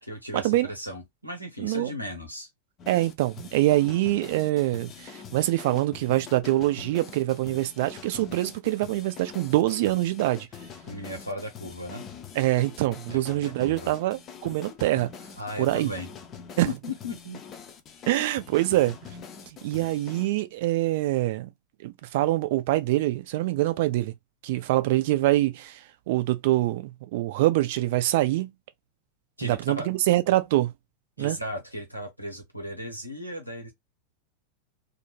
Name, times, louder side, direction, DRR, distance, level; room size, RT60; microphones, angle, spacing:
voice 1, 0.0-2.5 10.9-12.0 13.1-13.9 15.4-16.1 16.7-17.4 18.1-18.2 29.4-29.9 31.2-33.7, left 1 dB, 90° right, 0.8 m, -36 dB
sound 1, 2.8-20.3, left 7 dB, 30° left, 0.5 m, -44 dB
voice 2, 2.9-10.5 12.4-15.1 15.6-15.9 16.6-16.7 18.1-19.0 19.6-21.5 21.8-24.1 24.4-25.8 26.1-28.5 29.4-30.7 31.2-31.4, right 16 dB, 50° right, 0.4 m, -24 dB
2.6 x 2.1 x 2.9 m
figure-of-eight pair, 90°, 0 cm